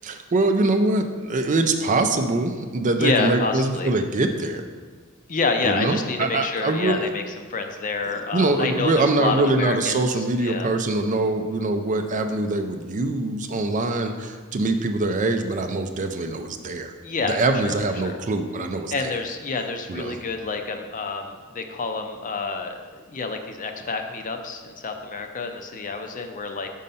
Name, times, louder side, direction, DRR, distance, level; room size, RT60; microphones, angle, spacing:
voice 1, 0.0-4.6 5.6-7.1 8.1-16.9 17.2-19.1 19.9-20.2, right 2 dB, 35° right, 6 dB, 0.4 m, -23 dB
voice 2, 3.0-3.9 5.3-7.2 7.5-10.7 17.0-17.4 17.6-17.8 18.0-18.1 18.9-26.7, left 4 dB, 35° left, 5 dB, 0.5 m, -28 dB
5.5 x 5.1 x 5.4 m, 1.5 s
head